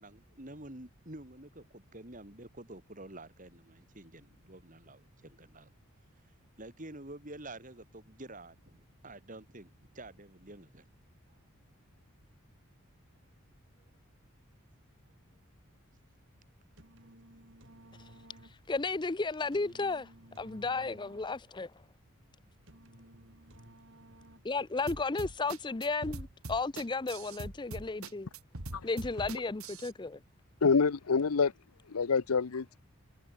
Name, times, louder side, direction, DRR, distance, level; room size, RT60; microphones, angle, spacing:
voice 1, 0.0-5.7 6.6-10.9, right 1 dB, 35° right, 4.0 m, -49 dB
sound 1, 16.5-24.8, right 1 dB, 60° right, 6.1 m, -57 dB
voice 2, 18.4-20.1 20.4-21.7 24.4-28.3 28.8-30.2, left 3 dB, 20° left, 0.5 m, -34 dB
sound 2, 24.9-29.9, right 2 dB, 90° right, 2.7 m, -42 dB
voice 3, 30.6-31.5 31.9-32.7, left 5 dB, 85° left, 0.7 m, -26 dB
head